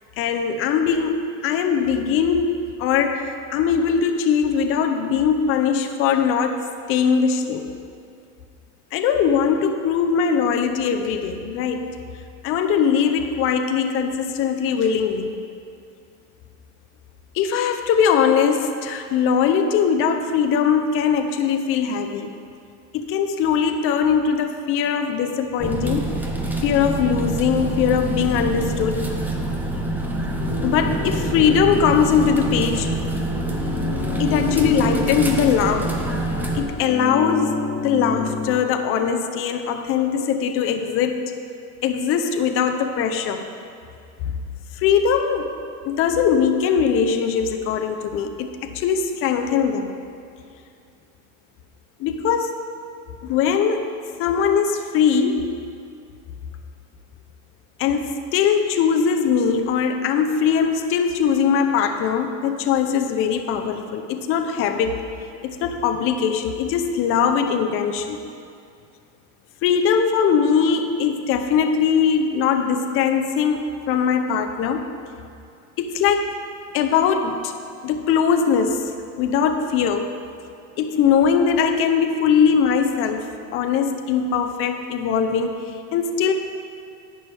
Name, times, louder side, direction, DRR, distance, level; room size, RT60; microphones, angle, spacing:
voice 1, 0.2-6.6 6.9-7.7 8.9-11.9 12.4-15.3 17.3-22.3 22.9-26.1 26.6-29.1 30.6-32.9 34.2-35.9 36.5-41.3 41.8-43.5 44.7-45.5 45.8-49.9 52.0-52.6 53.2-53.9 54.2-55.5 57.8-65.0 65.4-68.2 69.6-74.9 75.8-76.4 76.7-77.5 77.8-78.8 79.2-80.1 80.8-83.3 83.5-85.6 85.9-86.3, left 7 dB, 35° left, 6 dB, 0.6 m, -21 dB
sound 1, 25.6-36.6, right 2 dB, 5° right, 0.6 m, -26 dB
sound 2, 30.4-38.5, left 5 dB, 15° left, 1.6 m, -30 dB
10.5 x 8.6 x 3.4 m, 2.4 s
supercardioid pair, 135°, 38 cm